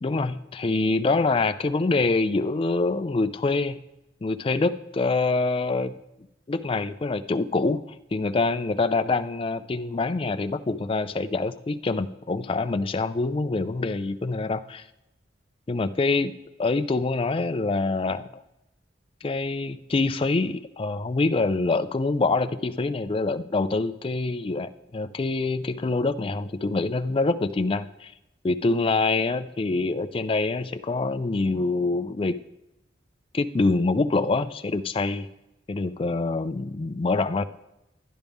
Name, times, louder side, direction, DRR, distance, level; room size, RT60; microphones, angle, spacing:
voice 1, 0.0-3.8 4.2-5.9 6.5-7.8 8.1-14.8 15.7-16.3 16.6-18.4 19.2-28.1 28.4-32.4 33.3-35.3 35.7-37.4, left 3 dB, 30° left, 11 dB, 0.4 m, -25 dB
11.0 x 10.5 x 3.5 m, 0.88 s
head